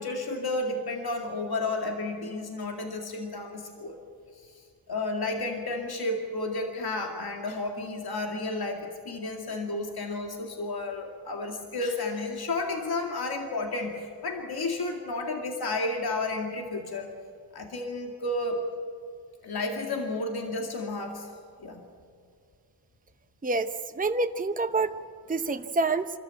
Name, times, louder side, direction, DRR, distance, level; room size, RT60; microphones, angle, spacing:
voice 1, 0.0-4.0 4.4-17.1 17.5-18.6 19.4-21.3 21.6-21.8, left 2 dB, 70° left, 2 dB, 2.3 m, -32 dB
voice 2, 24.0-24.9 25.3-26.1, right 3 dB, 20° right, 8 dB, 0.8 m, -27 dB
25.5 x 14.0 x 9.1 m, 2.3 s
wide cardioid pair, 75°, 39 cm